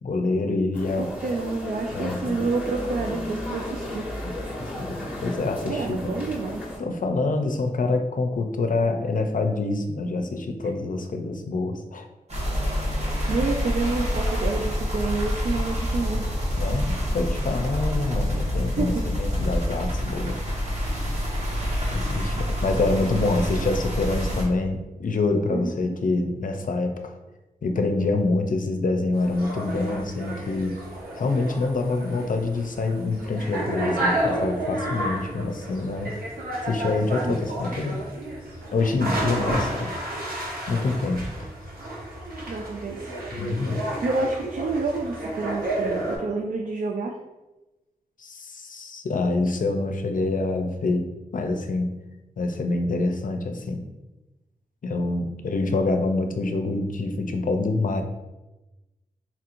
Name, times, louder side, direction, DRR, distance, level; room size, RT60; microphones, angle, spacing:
voice 1, 0.0-1.1 1.9-2.5 4.2-4.3 4.8-6.3 6.8-12.0 16.6-20.4 21.9-27.1 27.6-30.8 31.1-36.1 36.6-38.0 38.7-39.9 40.7-41.5 43.3-43.8 48.2-51.1 51.3-52.0 52.4-53.8 54.8-58.0, left 3 dB, 60° left, 5 dB, 0.5 m, -26 dB
sound 1, 0.7-6.8, left 1 dB, 10° right, 1.2 m, -34 dB
voice 2, 1.0-4.0 4.4-4.5 5.7-6.6 13.3-16.2 18.7-19.0 25.5-26.0 37.2-37.4 42.5-43.0 44.0-47.2 55.6-55.7, right 3 dB, 65° right, 1 dB, 0.4 m, -29 dB
sound 2, 12.3-24.4, equal, 45° right, 1.1 m, -27 dB
sound 3, 29.1-46.2, right 1 dB, 85° right, 1.0 m, -31 dB
4.3 x 2.8 x 2.5 m, 1.0 s
cardioid pair, 55°, 15 cm